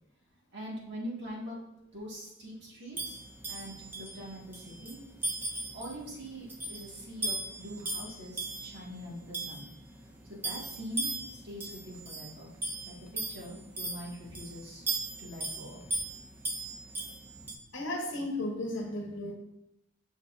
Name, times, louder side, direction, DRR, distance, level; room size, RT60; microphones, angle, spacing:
voice 1, 0.5-1.6 1.9-3.2 3.5-5.0 5.7-9.7 10.3-12.5 12.8-14.9 15.2-16.0 17.3-17.4, equal, 50° right, -5 dB, 1.9 m, -43 dB
sound 1, 3.0-17.5, right 2 dB, 10° right, 0.5 m, -38 dB
voice 2, 17.7-19.3, left 1 dB, 60° left, 1 dB, 1.0 m, -34 dB
6.7 x 6.2 x 2.6 m, 0.87 s
head